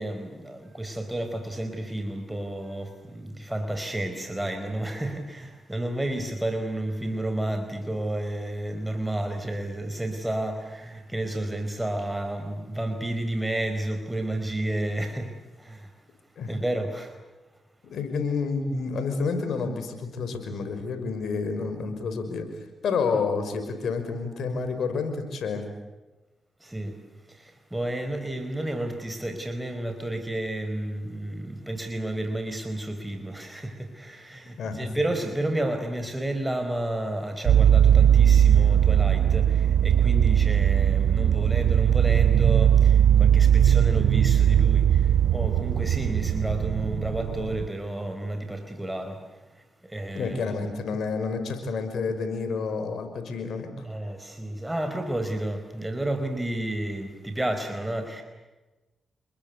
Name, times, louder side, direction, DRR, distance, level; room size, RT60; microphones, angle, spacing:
voice 1, 0.0-15.9 16.5-17.1 26.6-27.0 27.3-49.2 49.5-50.5 53.8-58.2, right 1 dB, 15° right, 6 dB, 4.6 m, -31 dB
voice 2, 17.9-25.6 34.6-34.9 50.1-53.8, left 4 dB, 75° left, 7 dB, 5.8 m, -29 dB
sound 1, 37.5-47.7, right 9 dB, 80° right, 0.8 m, -19 dB
29.0 x 22.0 x 8.4 m, 1.1 s
supercardioid pair, 45°, 0 cm